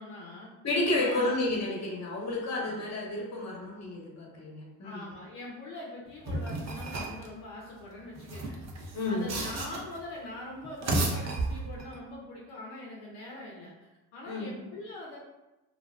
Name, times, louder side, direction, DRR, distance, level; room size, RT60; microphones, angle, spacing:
voice 1, 0.0-0.5 0.9-1.4 2.6-2.9 4.8-8.6 9.1-13.7 14.1-15.2, left 1 dB, 75° left, -3 dB, 0.6 m, -43 dB
voice 2, 0.6-5.1 8.9-9.3 14.3-14.5, left 2 dB, 40° left, -2 dB, 1.0 m, -31 dB
sound 1, 6.3-7.3 8.2-10.0 10.6-12.0, right 2 dB, 40° right, 0.6 m, -33 dB
2.5 x 2.1 x 2.3 m, 1.0 s
hypercardioid pair, 55°, 43 cm